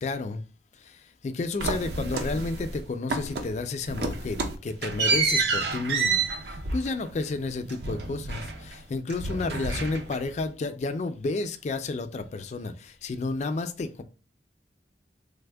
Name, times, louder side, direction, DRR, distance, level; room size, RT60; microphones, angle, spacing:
voice 1, 0.0-0.4 0.8-14.0, left 3 dB, 40° left, 0.3 m, -31 dB
sound 1, 1.6-2.8 3.1-3.6 3.9-8.8 9.1-10.4, right 4 dB, 60° right, 0.5 m, -29 dB
3.4 x 2.0 x 3.3 m
head